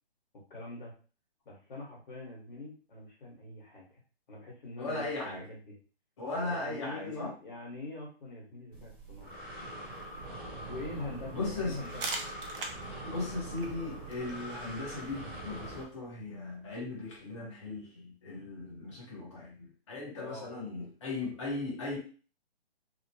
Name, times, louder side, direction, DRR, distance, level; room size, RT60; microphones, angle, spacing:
voice 1, 0.5-0.9 1.4-3.8 4.3-5.8 6.5-9.4 10.7-12.0 20.2-20.5, left 2 dB, 50° left, -3 dB, 1.4 m, -43 dB
voice 2, 4.8-5.5 6.2-7.3 11.3-11.8 13.0-22.0, left 3 dB, 25° left, -4 dB, 0.9 m, -37 dB
Breathing, 8.7-15.8, right 2 dB, 20° right, 0.8 m, -43 dB
sound 1, 11.7-17.2, right 3 dB, 55° right, 0.7 m, -44 dB
3.0 x 2.1 x 2.7 m, 0.37 s
hypercardioid pair, 165°, 32 cm